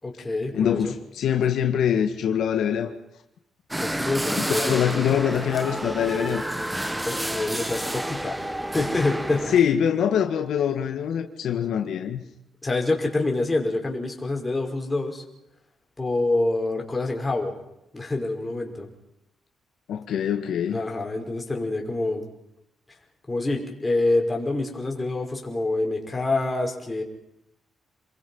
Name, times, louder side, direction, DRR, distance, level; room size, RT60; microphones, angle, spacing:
voice 1, 0.0-0.9 3.8-4.8 7.0-8.4 8.7-9.5 12.6-15.2 16.0-17.5 17.9-18.9 20.7-22.3 23.3-27.0, left 2 dB, 15° left, 5.3 m, -26 dB
voice 2, 0.5-2.9 4.4-6.4 9.5-12.2 19.9-20.8, left 9 dB, 80° left, 1.9 m, -24 dB
sound 1, 3.7-9.6, right 1 dB, 5° right, 1.3 m, -29 dB
29.0 x 22.0 x 5.7 m
cardioid pair, 120°, 0 cm